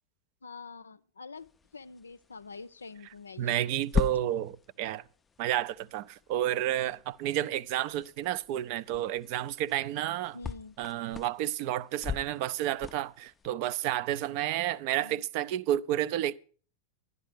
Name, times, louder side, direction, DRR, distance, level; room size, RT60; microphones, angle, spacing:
voice 1, 0.4-3.8 10.3-10.8 15.0-15.2, left 4 dB, 75° left, 0.5 m, -46 dB
sound 1, 1.4-13.5, left 6 dB, 15° left, 0.5 m, -40 dB
voice 2, 3.4-5.0 5.4-10.4 10.8-16.3, right 12 dB, 45° right, 0.5 m, -31 dB
12.0 x 10.5 x 4.9 m
figure-of-eight pair, 90°, 0 cm